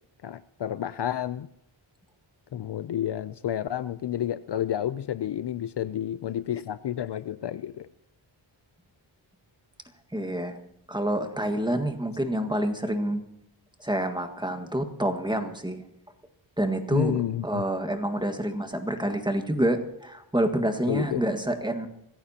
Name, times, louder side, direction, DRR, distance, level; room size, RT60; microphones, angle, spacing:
voice 1, 0.2-1.5 2.5-7.9 16.9-17.6 20.9-21.2, left 10 dB, 55° left, 14 dB, 0.5 m, -30 dB
voice 2, 10.1-10.6 10.9-13.2 13.8-15.9 16.6-21.9, right 1 dB, 10° right, 6 dB, 1.7 m, -28 dB
25.5 x 15.0 x 2.9 m, 0.79 s
wide cardioid pair, 80°, 49 cm